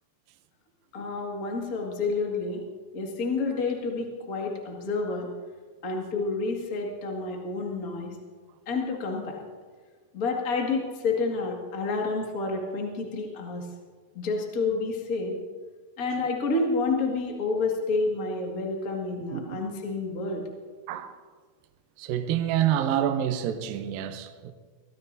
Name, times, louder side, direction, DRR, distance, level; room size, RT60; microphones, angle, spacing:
voice 1, 0.9-2.6 2.9-5.3 5.8-8.1 8.6-9.4 10.1-13.7 14.1-15.4 16.0-20.4, left 3 dB, 60° left, 0.9 m, -29 dB
voice 2, 22.0-24.5, right 10 dB, 80° right, 2.0 m, -27 dB
23.5 x 16.5 x 2.7 m
omnidirectional pair, 5.2 m